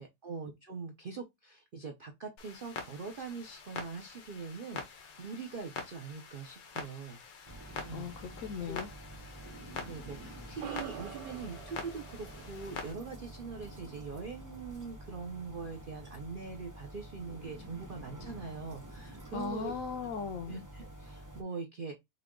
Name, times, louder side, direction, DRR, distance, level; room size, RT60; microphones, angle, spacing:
voice 1, 0.0-7.2 7.8-8.1 8.6-8.8 9.8-19.7 20.4-21.9, right 5 dB, 85° right, 0.4 m, -43 dB
Clock, 2.4-12.9, left 5 dB, 90° left, 1.7 m, -46 dB
sound 1, 7.5-21.4, right 1 dB, 20° right, 0.5 m, -48 dB
voice 2, 7.9-8.9 19.3-20.6, left 6 dB, 70° left, 0.8 m, -38 dB
sound 2, 10.6-15.3, right 7 dB, 65° right, 1.3 m, -48 dB
5.5 x 2.3 x 3.7 m
omnidirectional pair, 1.9 m